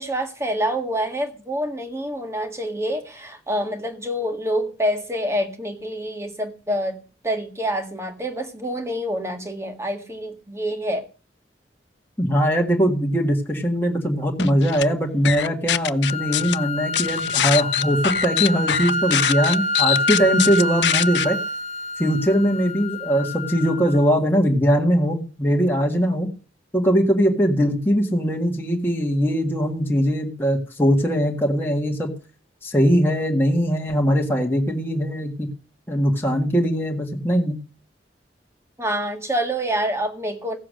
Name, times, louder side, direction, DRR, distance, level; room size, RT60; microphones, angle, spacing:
voice 1, 0.0-11.1 38.8-40.6, equal, 15° right, 1.7 m, -27 dB
voice 2, 12.2-21.4 22.0-26.3 26.7-32.1 32.6-35.5 35.9-37.6, equal, 15° left, 1.7 m, -21 dB
sound 1, 14.4-14.8 15.2-16.6 16.9-21.2, left 11 dB, 75° left, 0.5 m, -23 dB
sound 2, 16.0-24.1, left 1 dB, 40° left, 0.9 m, -27 dB
15.5 x 7.4 x 6.4 m
head